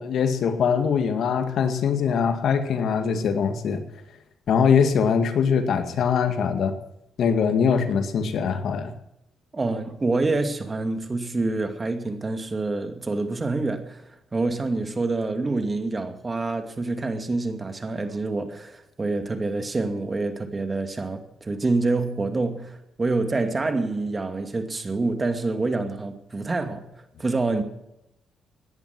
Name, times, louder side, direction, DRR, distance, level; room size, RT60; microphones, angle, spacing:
voice 1, 0.0-3.8 4.5-6.8 7.2-8.9, left 6 dB, 65° left, 2.0 m, -22 dB
voice 2, 9.5-26.9 27.2-27.6, right 3 dB, 25° right, 2.4 m, -27 dB
18.0 x 11.0 x 6.1 m
cardioid pair, 90°, 0 cm